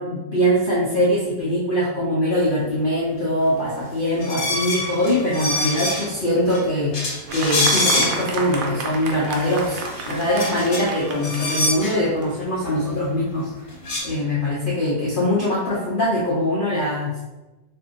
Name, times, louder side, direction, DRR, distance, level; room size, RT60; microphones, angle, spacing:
voice 1, 0.0-13.7 14.0-17.2, left 1 dB, 75° left, -7 dB, 0.4 m, -22 dB
sound 1, 4.2-6.2 6.5-6.6 6.9-8.4 8.9-9.0 9.3-11.9 13.4-13.5 13.7-14.0, left 1 dB, 45° left, 1.1 m, -25 dB
Fireworks, 7.3-13.0, right 3 dB, 75° right, 1.1 m, -32 dB
2.7 x 2.7 x 3.7 m, 1.1 s
omnidirectional pair, 2.0 m